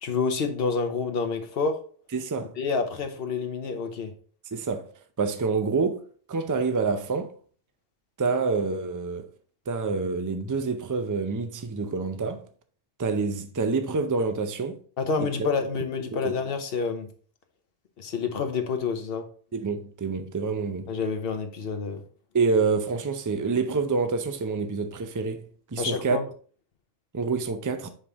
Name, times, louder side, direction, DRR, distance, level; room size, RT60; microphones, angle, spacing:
voice 1, 0.0-1.8 2.6-4.1 15.0-17.1 18.0-19.2 20.9-22.0 25.8-26.2, left 5 dB, 55° left, 1.1 m, -28 dB
voice 2, 2.1-2.5 4.5-4.9 5.2-6.0 6.3-7.3 8.2-9.3 9.7-12.5 13.0-14.8 15.2-15.3 16.2-16.3 19.5-20.9 22.3-26.2 27.1-27.9, right 4 dB, 30° right, 0.4 m, -27 dB
5.6 x 5.1 x 3.5 m
omnidirectional pair, 1.2 m